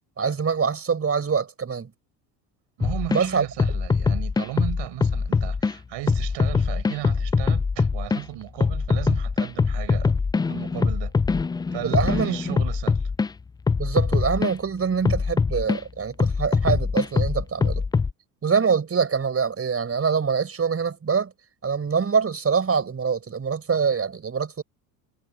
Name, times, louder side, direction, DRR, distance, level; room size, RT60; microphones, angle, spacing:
voice 1, 0.2-1.9 3.1-3.5 11.8-12.6 13.8-17.8 18.4-21.3 21.6-24.6, right 6 dB, 30° right, 4.6 m, -24 dB
sound 1, 2.8-3.2 3.6-5.7 6.1-8.2 8.6-13.3 13.7-14.5 15.0-15.8 16.2-18.1, left 4 dB, 10° left, 0.3 m, -23 dB
voice 2, 2.8-10.2 10.5-11.1 11.7-13.1, right 16 dB, 65° right, 5.8 m, -35 dB
supercardioid pair, 80°, 47 cm